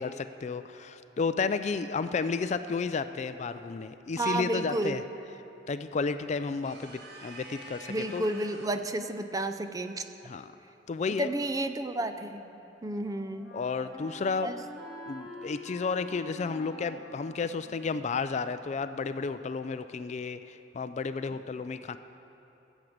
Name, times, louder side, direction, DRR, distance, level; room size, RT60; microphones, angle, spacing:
voice 1, 0.0-5.0 5.7-8.2 10.2-10.5 10.9-11.3 13.5-14.5 15.1-22.0, left 4 dB, 40° left, 11 dB, 0.4 m, -32 dB
voice 2, 4.2-5.0 7.9-10.0 11.2-12.5 12.8-13.5 14.4-14.6, right 1 dB, 20° right, 9 dB, 0.5 m, -31 dB
sound 1, 6.6-8.9, right 2 dB, 60° right, 1.4 m, -47 dB
Wind instrument woodwind instrument, 12.1-18.9, left 1 dB, ahead, 2.2 m, -48 dB
16.5 x 7.3 x 7.8 m, 3.0 s
head